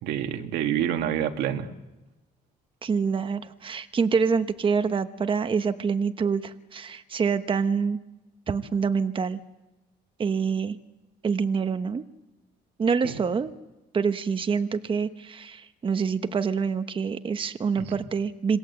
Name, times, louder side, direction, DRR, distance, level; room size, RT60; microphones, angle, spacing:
voice 1, 0.0-1.7 13.0-13.2 17.8-18.0, right 10 dB, 85° right, 6 dB, 2.0 m, -28 dB
voice 2, 2.8-8.0 8.5-9.4 10.2-10.8 11.2-12.0 12.8-13.5 13.9-18.6, right 5 dB, 30° right, 9 dB, 1.1 m, -26 dB
26.5 x 20.0 x 8.0 m, 1.1 s
cardioid pair, 110°, 17 cm